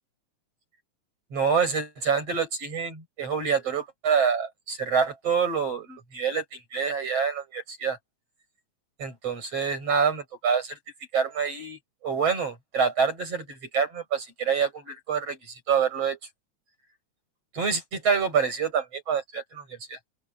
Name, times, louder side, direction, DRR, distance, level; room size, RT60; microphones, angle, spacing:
voice 1, 1.3-8.0 9.0-10.8 11.1-16.2 17.5-20.0, right 6 dB, 50° right, 7.9 m, -27 dB
open air
omnidirectional pair, 3.4 m